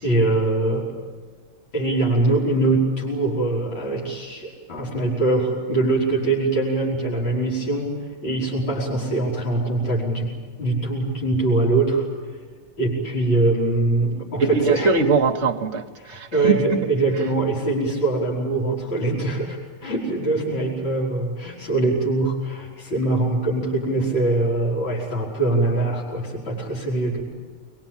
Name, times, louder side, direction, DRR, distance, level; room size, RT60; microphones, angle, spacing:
voice 1, 0.0-0.9 1.7-8.0 8.2-10.3 10.6-12.0 12.8-14.9 16.0-27.2, right 2 dB, 75° left, 6.2 m, -23 dB
voice 2, 14.4-16.9, right 4 dB, 45° right, 1.0 m, -22 dB
24.0 x 22.5 x 8.9 m
omnidirectional pair, 2.2 m